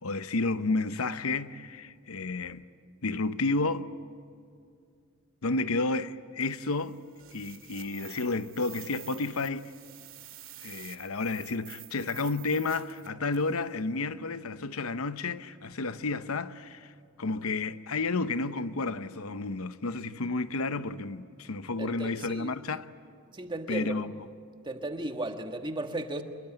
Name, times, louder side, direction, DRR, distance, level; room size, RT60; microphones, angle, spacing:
voice 1, 0.0-2.6 3.0-3.9 5.4-7.0 7.3-9.7 10.6-16.9 17.2-22.9 23.7-24.1, left 3 dB, 90° left, 0.9 m, -31 dB
sound 1, 6.4-13.6, right 14 dB, 65° right, 2.0 m, -49 dB
voice 2, 21.8-22.5 23.3-24.0 24.6-26.2, right 2 dB, 20° right, 1.5 m, -35 dB
26.5 x 21.5 x 9.0 m
head